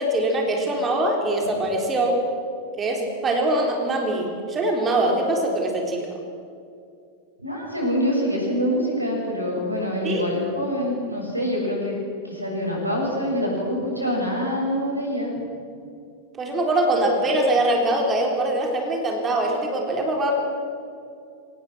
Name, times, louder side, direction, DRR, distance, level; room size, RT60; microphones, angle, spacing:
voice 1, 0.0-2.2 2.8-6.0 10.0-10.2 16.4-20.3, right 1 dB, 20° right, 1 dB, 3.8 m, -23 dB
voice 2, 7.4-12.0 12.2-15.3, equal, 85° right, -2 dB, 7.5 m, -25 dB
24.5 x 18.5 x 6.2 m, 2.4 s
figure-of-eight pair, 90°, 0 cm